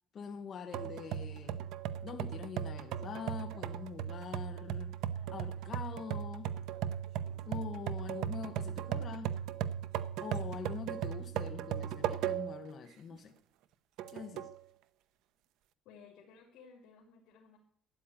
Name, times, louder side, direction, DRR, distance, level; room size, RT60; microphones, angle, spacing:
voice 1, 0.1-1.6 2.0-4.9 5.3-6.6 7.5-9.4 10.2-13.3 14.1-14.5, left 6 dB, 35° left, 6 dB, 0.9 m, -44 dB
drum open air, 0.7-12.7 13.1-13.2 14.0-14.6, right 10 dB, 70° right, 0.8 m, -37 dB
voice 2, 15.8-17.6, left 5 dB, 75° left, -2 dB, 3.0 m, -57 dB
13.0 x 9.3 x 9.1 m, 0.64 s
cardioid pair, 165°, 0 cm